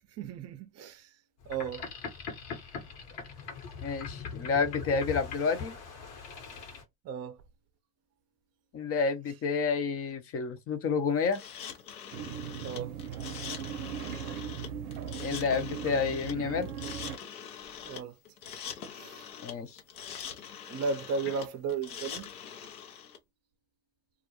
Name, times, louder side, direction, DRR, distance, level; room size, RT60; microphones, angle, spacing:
voice 1, 0.1-1.2 1.5-1.9 7.0-7.4 12.6-13.0 17.8-18.2 19.0-19.3 20.7-22.3, right 5 dB, 35° right, 0.6 m, -35 dB
Boat Water vehicle, 1.4-6.8, left 6 dB, 60° left, 1.2 m, -41 dB
voice 2, 3.8-5.7 8.7-11.4 15.2-16.7 19.4-19.8, left 5 dB, 30° left, 0.7 m, -29 dB
sound 1, 11.3-23.2, left 8 dB, 75° left, 0.8 m, -43 dB
sound 2, 12.1-17.2, right 8 dB, 80° right, 0.6 m, -38 dB
2.4 x 2.1 x 2.9 m
hypercardioid pair, 75°, 45 cm